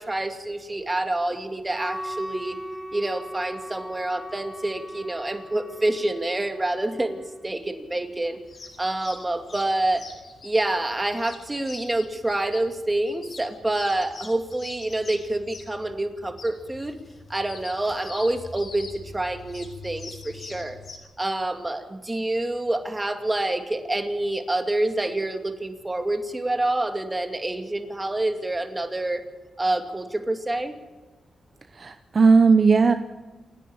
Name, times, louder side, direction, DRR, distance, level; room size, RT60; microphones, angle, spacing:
voice 1, 0.0-2.6 2.9-8.4 8.8-10.1 10.4-17.0 17.3-20.8 21.2-29.2 29.6-30.7, right 2 dB, 20° right, 7 dB, 2.5 m, -27 dB
Wind instrument woodwind instrument, 1.7-7.6, equal, ahead, 1.0 m, -38 dB
sound 1, 8.4-21.0, left 4 dB, 55° left, 4.3 m, -44 dB
voice 2, 31.7-32.9, right 4 dB, 50° right, 10 dB, 0.9 m, -17 dB
28.5 x 10.5 x 8.8 m, 1.2 s
cardioid pair, 75°, 0 cm